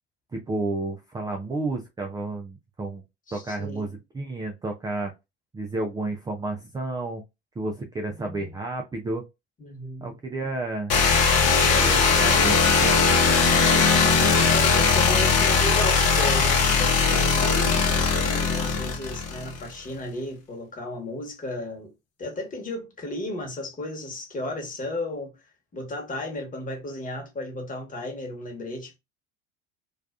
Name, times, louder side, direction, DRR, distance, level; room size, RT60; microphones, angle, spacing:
voice 1, 0.3-3.0 3.3-5.1 5.5-7.2 7.6-9.2 10.0-11.0 11.7-13.1, right 2 dB, 10° right, 0.3 m, -31 dB
voice 2, 3.3-4.0 8.2-8.5 9.6-10.1 11.4-12.7 14.5-21.9 22.2-29.0, left 1 dB, 25° left, 1.2 m, -34 dB
sound 1, 10.9-19.6, left 5 dB, 50° left, 0.9 m, -20 dB
2.4 x 2.2 x 2.3 m
hypercardioid pair, 75°, 33 cm